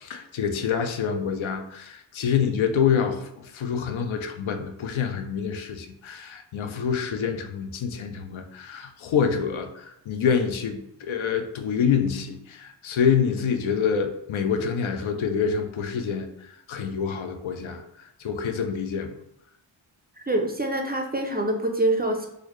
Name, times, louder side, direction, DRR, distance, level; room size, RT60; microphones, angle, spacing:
voice 1, 0.0-16.3 16.7-17.8 18.2-19.1, left 7 dB, 80° left, 7 dB, 0.5 m, -26 dB
voice 2, 20.3-22.3, right 1 dB, 20° right, 3 dB, 0.4 m, -25 dB
3.8 x 2.1 x 3.0 m, 0.81 s
wide cardioid pair, 90°, 47 cm